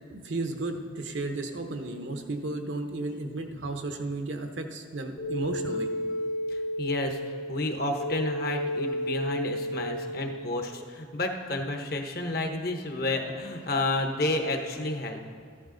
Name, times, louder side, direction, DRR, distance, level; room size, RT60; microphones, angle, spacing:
voice 1, 0.1-5.9, right 2 dB, 70° right, 5 dB, 0.9 m, -33 dB
sound 1, 5.2-10.7, equal, 80° left, 2.6 m, -32 dB
voice 2, 6.5-15.2, left 2 dB, 50° left, 5 dB, 0.9 m, -31 dB
14.0 x 11.0 x 3.9 m, 2.2 s
head